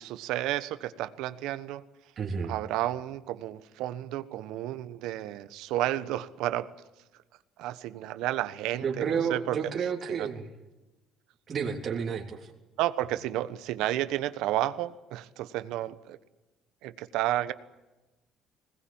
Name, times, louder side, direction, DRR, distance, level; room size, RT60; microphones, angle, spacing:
voice 1, 0.0-1.8 2.5-6.7 7.6-9.6 10.2-10.3 12.8-16.2 16.8-17.5, right 14 dB, 80° right, 13 dB, 1.2 m, -31 dB
voice 2, 2.2-2.6 8.8-10.5 11.5-12.5, right 6 dB, 40° right, 1 dB, 3.4 m, -31 dB
21.0 x 19.0 x 8.8 m, 1.1 s
cardioid pair, 120°, 0 cm